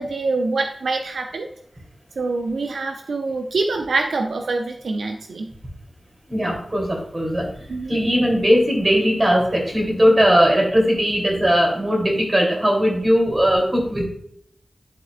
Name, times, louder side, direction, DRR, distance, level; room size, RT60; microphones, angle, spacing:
voice 1, 0.0-1.5 2.2-5.5 7.7-8.0, right 3 dB, 90° right, 4 dB, 0.5 m, -25 dB
voice 2, 6.3-14.1, equal, 35° right, -1 dB, 3.0 m, -19 dB
11.0 x 4.4 x 2.4 m, 0.67 s
cardioid pair, 50°, 0 cm